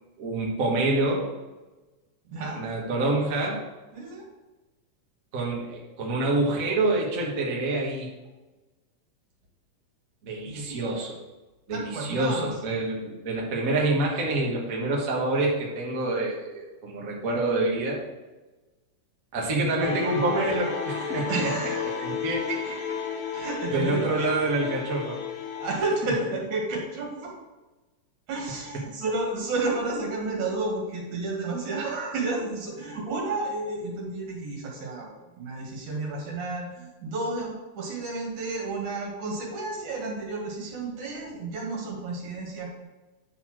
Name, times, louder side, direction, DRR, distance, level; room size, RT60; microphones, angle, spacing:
voice 1, 0.2-1.3 2.5-3.6 5.3-8.1 10.2-11.2 11.7-18.0 19.3-21.5 22.0-22.5 23.7-25.2 26.0-26.1, right 2 dB, 40° right, -3 dB, 1.3 m, -27 dB
voice 2, 2.3-2.6 3.9-4.2 10.5-10.8 11.7-12.5 21.3-22.1 22.5-23.0 23.3-24.3 25.6-27.3 28.3-42.8, right 3 dB, 65° right, -2 dB, 3.2 m, -31 dB
sound 1, 19.8-25.8, left 5 dB, 80° left, 2.7 m, -33 dB
10.0 x 4.2 x 6.2 m, 1.1 s
omnidirectional pair, 3.7 m